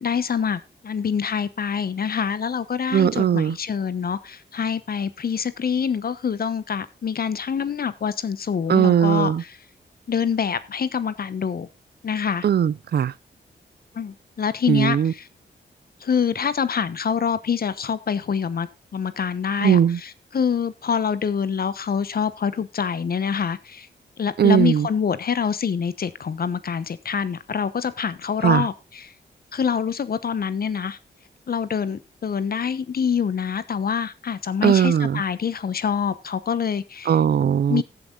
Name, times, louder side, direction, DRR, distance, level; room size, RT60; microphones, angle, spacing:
voice 1, 0.0-9.3 10.1-11.7 12.0-12.4 13.9-15.2 16.0-23.9 24.2-29.1 29.5-31.0 31.5-37.1 37.7-37.8, left 7 dB, 55° left, 1.0 m, -25 dB
voice 2, 2.9-3.6 8.7-9.4 12.4-13.1 14.7-15.1 19.6-20.0 24.4-24.9 28.4-28.7 34.6-35.2 37.1-37.8, right 8 dB, 60° right, 0.6 m, -19 dB
14.5 x 7.8 x 3.9 m
wide cardioid pair, 100°, 18 cm